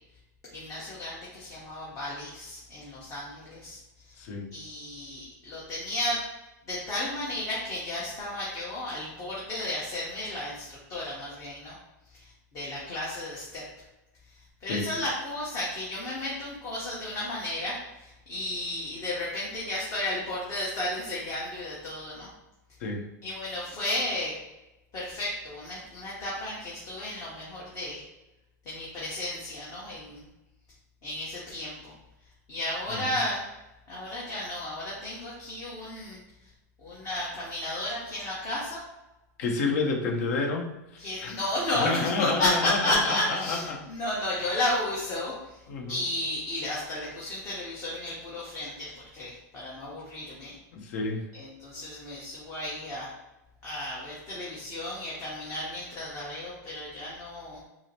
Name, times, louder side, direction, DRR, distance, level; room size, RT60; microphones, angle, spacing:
voice 1, 0.5-3.8 4.1-4.2 4.5-6.2 6.7-11.7 12.1-13.6 14.3-22.3 23.2-24.4 24.9-28.0 28.6-30.2 31.0-31.9 32.5-33.5 33.9-36.5 36.8-38.8 41.0-45.6 45.9-50.5 51.3-53.1 53.6-57.6, left 1 dB, 30° left, -6 dB, 1.1 m, -33 dB
voice 2, 4.2-4.5 14.7-14.9 22.8-23.1 32.9-33.2 39.4-41.4 41.7-43.8 45.7-46.0 50.7-51.3, left 3 dB, 60° left, 3 dB, 0.8 m, -29 dB
4.8 x 2.0 x 2.9 m, 0.97 s
hypercardioid pair, 125°, 10 cm